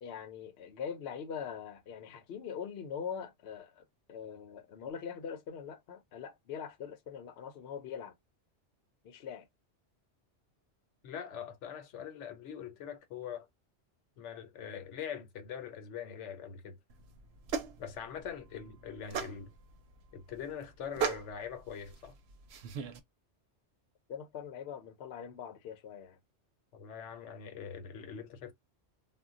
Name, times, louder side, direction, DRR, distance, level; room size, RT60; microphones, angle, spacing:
voice 1, 0.0-8.1 9.0-9.5 24.1-26.2, left 7 dB, 65° left, 0.8 m, -42 dB
voice 2, 11.0-13.5 14.2-16.8 17.8-19.5 20.1-22.1 26.7-28.5, left 8 dB, 90° left, 1.0 m, -43 dB
sound 1, 16.9-23.0, right 7 dB, 70° right, 0.8 m, -39 dB
2.2 x 2.1 x 3.6 m
omnidirectional pair, 1.2 m